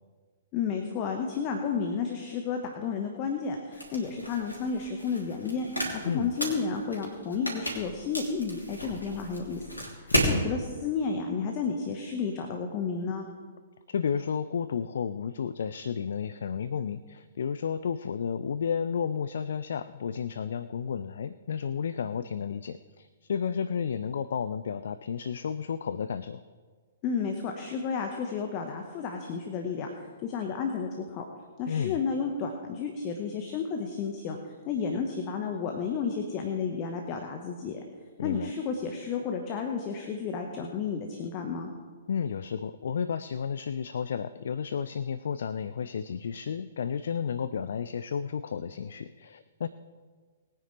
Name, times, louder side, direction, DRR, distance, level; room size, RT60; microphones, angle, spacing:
voice 1, 0.5-5.7 5.9-9.7 10.0-13.3 27.0-31.2 31.6-37.8 38.2-41.7, left 5 dB, 30° left, 4 dB, 1.3 m, -32 dB
sound 1, 3.7-10.4, equal, 85° left, 3.1 m, -33 dB
voice 2, 10.1-10.4 13.9-26.4 31.7-32.0 38.2-38.5 42.1-49.7, left 7 dB, 60° left, 14 dB, 0.4 m, -32 dB
21.0 x 9.6 x 3.3 m, 1.5 s
figure-of-eight pair, 115°, 0 cm